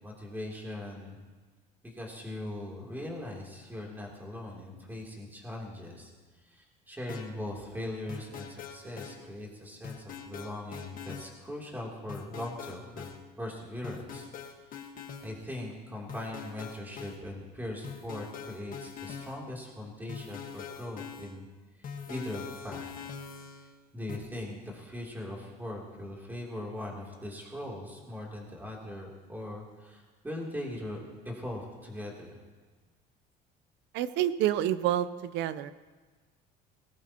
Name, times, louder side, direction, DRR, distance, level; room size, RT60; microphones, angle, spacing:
voice 1, 0.0-1.2 1.8-6.1 6.4-13.1 13.4-14.6 14.8-21.5 22.1-23.0 23.9-31.0 31.2-32.4, left 1 dB, 10° right, -2 dB, 3.2 m, -40 dB
sound 1, 7.1-7.3 8.1-9.2 9.8-11.3 12.1-13.2 13.8-15.3 16.1-17.2 17.8-19.4 20.1-21.4 21.8-23.7 24.1-24.2, left 7 dB, 45° left, 1.6 m, -43 dB
voice 2, 33.9-35.7, right 12 dB, 70° right, 14 dB, 0.7 m, -28 dB
20.0 x 18.0 x 3.0 m, 1.4 s
cardioid pair, 125°, 19 cm